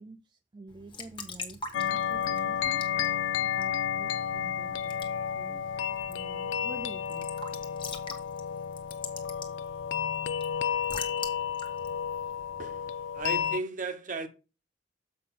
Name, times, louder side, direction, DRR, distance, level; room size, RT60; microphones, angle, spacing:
voice 1, 0.0-2.9 3.4-5.6 6.1-7.3, right 3 dB, 25° right, 0.3 m, -48 dB
Raindrop / Drip / Trickle dribble, 0.7-13.1, left 4 dB, 25° left, 1.2 m, -45 dB
sound 1, 1.7-13.6, left 8 dB, 85° left, 0.3 m, -31 dB
voice 2, 13.1-14.3, right 3 dB, 45° right, 0.9 m, -35 dB
7.4 x 5.1 x 4.2 m
head